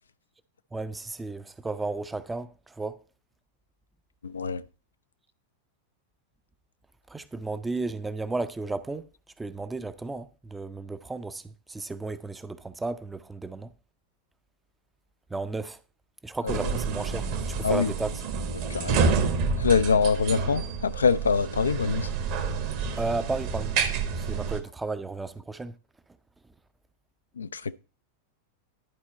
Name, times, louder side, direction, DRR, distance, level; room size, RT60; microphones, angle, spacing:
voice 1, 0.7-3.0 7.1-9.1 9.4-13.7 15.3-15.8 16.2-18.1 23.0-23.7 24.1-25.7, right 3 dB, 10° right, 0.5 m, -33 dB
voice 2, 4.2-4.6 16.4-16.6 17.6-17.9 18.5-19.2 19.6-22.1 27.4-27.7, left 5 dB, 75° left, 0.3 m, -25 dB
sound 1, 16.5-24.6, right 5 dB, 45° right, 1.1 m, -29 dB
11.0 x 4.3 x 4.1 m
figure-of-eight pair, 90°, 0 cm